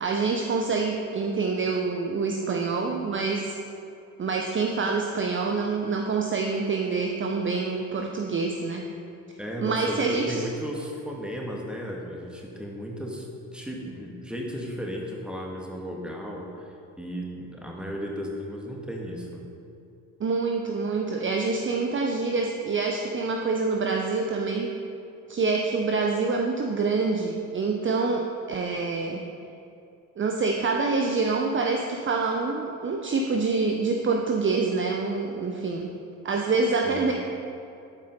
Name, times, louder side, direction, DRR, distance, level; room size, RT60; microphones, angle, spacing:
voice 1, 0.0-3.6 4.2-8.9 9.6-10.4 20.2-24.7 25.3-29.2 30.2-36.0 36.2-37.1, right 4 dB, 25° right, 2 dB, 0.8 m, -26 dB
voice 2, 9.4-13.3 13.5-16.7 17.0-19.5 36.8-37.1, equal, ahead, -1 dB, 2.0 m, -35 dB
11.5 x 8.6 x 3.9 m, 2.6 s
figure-of-eight pair, 50°, 45 cm